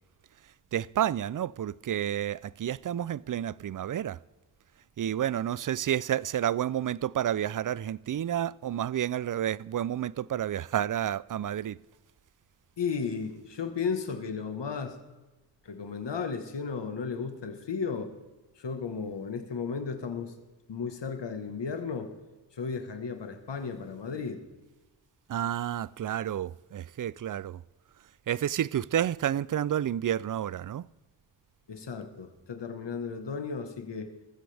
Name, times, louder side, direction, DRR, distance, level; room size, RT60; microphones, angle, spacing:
voice 1, 0.7-4.2 5.0-11.8 25.3-27.6 28.3-30.9, right 10 dB, 45° right, 0.4 m, -30 dB
voice 2, 12.8-15.0 15.6-18.1 18.6-20.3 20.7-22.1 22.5-24.4 31.7-34.1, left 5 dB, 70° left, 1.5 m, -34 dB
20.5 x 15.0 x 3.4 m
cardioid pair, 55°, 44 cm